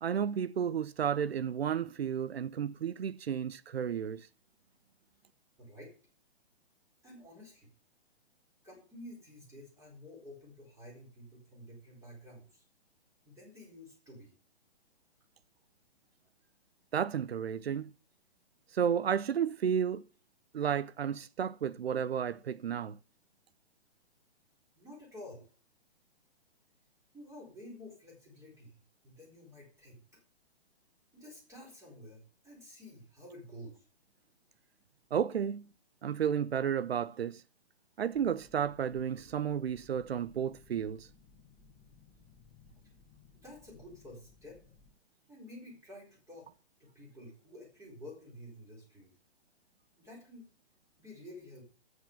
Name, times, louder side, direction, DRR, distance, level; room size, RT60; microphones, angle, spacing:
voice 1, 0.0-4.3 16.9-17.9 18.7-20.0 20.5-23.0 35.1-35.7 36.0-37.4 38.0-41.1, right 8 dB, 65° right, 0.7 m, -32 dB
voice 2, 5.6-5.9 7.0-7.7 8.6-12.6 13.3-14.3 24.8-25.5 27.1-28.8 29.0-30.2 31.1-33.8 43.3-44.6 45.3-46.5 46.8-49.1 50.0-50.4 51.0-51.6, left 1 dB, 10° right, 4.2 m, -51 dB
sound 1, 38.1-44.9, left 5 dB, 20° left, 1.7 m, -61 dB
8.0 x 7.8 x 6.8 m
figure-of-eight pair, 130°, 33 cm